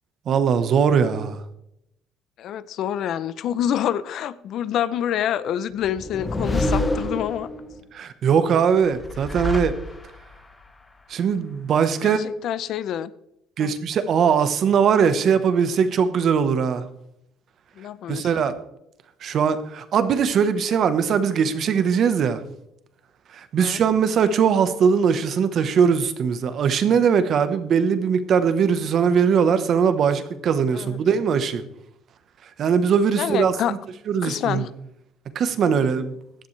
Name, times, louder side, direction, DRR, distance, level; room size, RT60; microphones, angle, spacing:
voice 1, 0.3-1.4 7.9-9.7 11.1-12.2 13.6-16.8 18.1-18.5 19.2-22.4 23.3-31.6 32.6-33.8 34.1-34.6 35.3-36.1, right 7 dB, 45° right, 1.1 m, -20 dB
voice 2, 2.4-7.5 9.3-9.4 12.0-13.1 13.6-13.7 17.8-18.4 23.6-23.8 30.7-31.0 33.2-33.8 34.2-34.7, left 10 dB, 55° left, 0.6 m, -27 dB
sound 1, 5.8-7.8 8.8-10.3, left 1 dB, 15° left, 1.1 m, -27 dB
16.0 x 11.5 x 3.3 m
cardioid pair, 145°, 0 cm